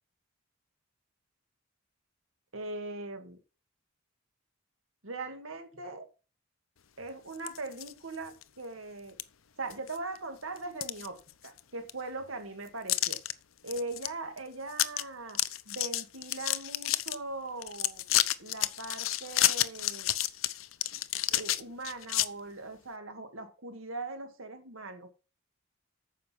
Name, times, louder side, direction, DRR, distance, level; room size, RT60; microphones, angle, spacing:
voice 1, 2.5-3.4 5.0-6.1 7.0-9.2 9.6-13.2 13.6-15.4 15.7-18.0 18.4-20.1 21.3-25.1, right 2 dB, 85° right, 2.0 m, -40 dB
sound 1, 7.3-7.9 8.4-8.5 9.2-9.3 9.7-10.2 10.6-11.6 11.9-12.0 12.9-13.3 13.7-14.1 14.4-14.5 14.7-15.0 15.3-17.2 17.6-22.3, left 14 dB, 85° left, 0.7 m, -30 dB
9.3 x 6.5 x 5.9 m
head